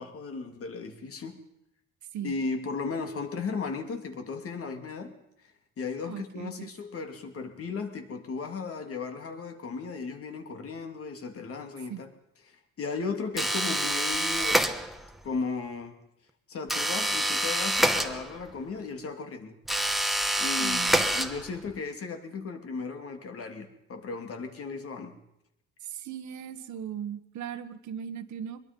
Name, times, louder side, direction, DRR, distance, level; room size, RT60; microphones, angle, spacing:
voice 1, 0.0-1.4 2.2-5.1 5.8-12.1 12.5-14.8 15.2-16.0 16.5-19.6 20.4-25.2, left 4 dB, 50° left, 5 dB, 3.1 m, -36 dB
voice 2, 6.0-6.7 11.9-12.0 20.5-21.1 25.8-28.6, right 9 dB, 75° right, 8 dB, 1.6 m, -38 dB
sound 1, 13.4-15.2 16.7-18.6 19.7-21.7, right 1 dB, ahead, 1.3 m, -27 dB
23.0 x 22.0 x 5.5 m, 0.83 s
cardioid pair, 115°, 29 cm